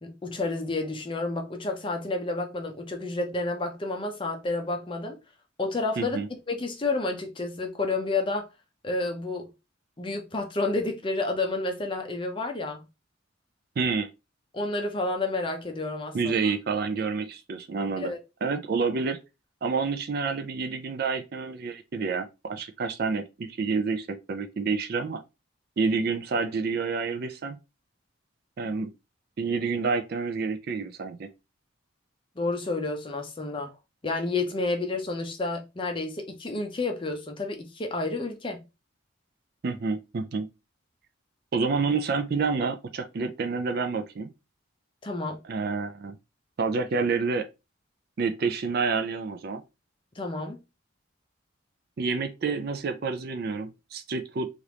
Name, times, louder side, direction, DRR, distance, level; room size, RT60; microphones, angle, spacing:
voice 1, 0.0-5.2 5.6-6.2 6.5-8.5 8.8-9.5 10.0-12.9 14.5-16.4 18.0-18.2 32.4-33.7 34.0-38.6 45.0-45.4 50.2-50.6, left 3 dB, 25° left, 0.5 m, -30 dB
voice 2, 6.0-6.3 13.8-14.1 16.1-18.1 18.4-19.2 19.6-25.2 25.8-27.6 28.6-28.9 29.4-31.3 39.6-40.5 41.5-44.3 45.4-46.2 46.6-47.5 48.2-49.6 52.0-54.5, right 4 dB, 50° right, 0.4 m, -28 dB
2.9 x 2.5 x 3.2 m
head